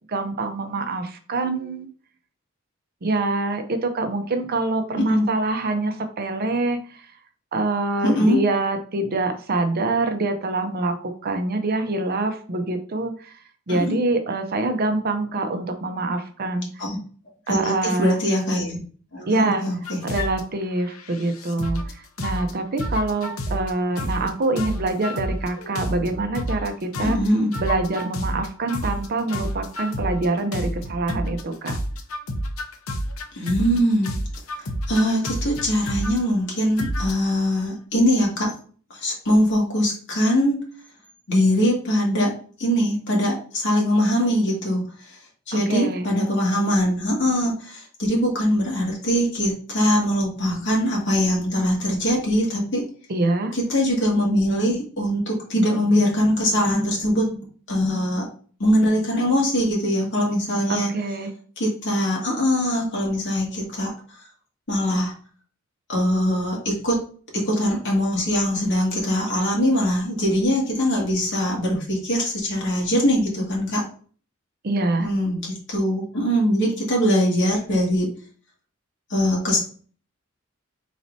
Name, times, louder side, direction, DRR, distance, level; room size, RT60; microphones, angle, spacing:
voice 1, 0.1-1.9 3.0-7.1 7.5-13.3 13.7-16.7 17.5-18.2 19.3-19.6 20.0-27.2 27.6-31.8 45.5-46.1 53.1-53.6 60.7-61.3 74.6-75.1, right 2 dB, 45° right, 7 dB, 0.6 m, -25 dB
voice 2, 8.0-8.4 13.7-14.0 16.8-17.0 17.5-18.8 19.1-20.0 27.0-27.5 33.3-34.1 34.9-38.5 38.9-40.6 41.3-42.3 42.6-45.2 45.5-52.8 53.5-58.3 58.6-60.9 61.6-63.9 64.7-65.1 65.9-67.0 67.3-73.8 75.0-78.1 79.1-79.6, equal, 60° left, -2 dB, 2.0 m, -22 dB
sound 1, 19.8-20.4 20.9-21.9 22.2-22.5 22.8-23.7 24.0-24.3 24.6-26.7 26.9-31.4 31.7-33.8 34.0-36.2 36.8-37.3, equal, 80° left, 0.8 m, -29 dB
4.7 x 4.1 x 2.6 m, 0.42 s
head